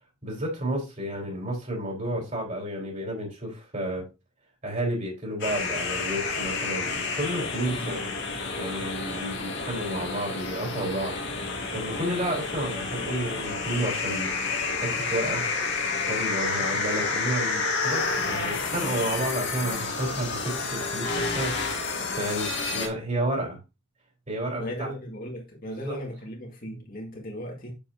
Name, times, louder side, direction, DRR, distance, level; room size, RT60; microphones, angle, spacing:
voice 1, 0.2-4.1 4.6-8.1 8.6-11.2 11.7-15.4 16.1-21.5 22.2-23.6 24.3-24.9 25.7-26.0, right 1 dB, 35° right, 3.9 m, -31 dB
sound 1, 5.4-22.9, left 4 dB, 60° left, 1.9 m, -30 dB
voice 2, 24.6-27.7, equal, 45° left, 1.9 m, -37 dB
7.7 x 7.1 x 2.7 m
head